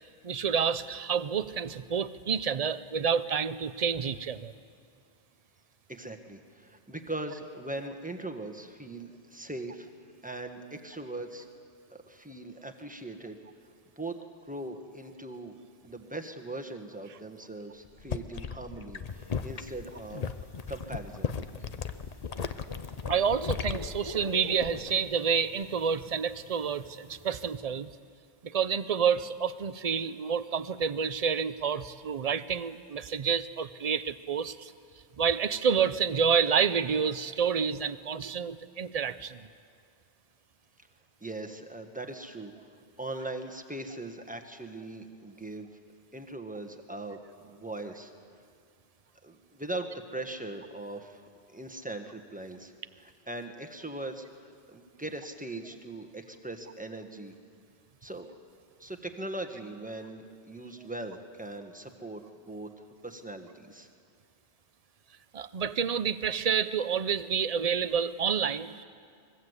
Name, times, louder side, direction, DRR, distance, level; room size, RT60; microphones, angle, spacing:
voice 1, 0.2-4.5 23.1-27.9 28.4-34.7 35.2-39.5 65.3-68.8, right 6 dB, 40° right, 14 dB, 0.7 m, -29 dB
voice 2, 5.9-9.9 10.2-11.5 11.9-13.4 14.0-14.2 14.5-20.4 20.7-21.3 41.2-42.5 43.0-45.7 46.1-48.1 49.2-54.2 54.7-57.3 58.0-58.3 58.8-62.7 63.0-63.9, right 2 dB, 10° right, 5 dB, 1.5 m, -40 dB
sound 1, 17.8-25.0 25.3-25.7, left 6 dB, 40° left, 0.8 m, -36 dB
sound 2, 19.1-27.6, left 2 dB, 20° left, 2.0 m, -47 dB
25.0 x 21.5 x 8.2 m, 2.2 s
omnidirectional pair, 1.1 m